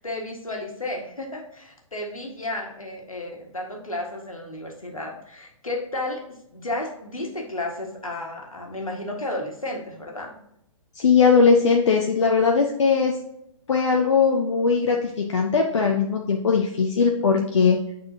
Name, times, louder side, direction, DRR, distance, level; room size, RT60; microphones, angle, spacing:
voice 1, 0.0-10.3, left 2 dB, 80° left, 0 dB, 1.7 m, -33 dB
voice 2, 11.0-13.2 13.7-17.8, left 5 dB, 60° left, 1 dB, 0.8 m, -19 dB
8.6 x 4.3 x 2.8 m, 0.77 s
figure-of-eight pair, 125°, 17 cm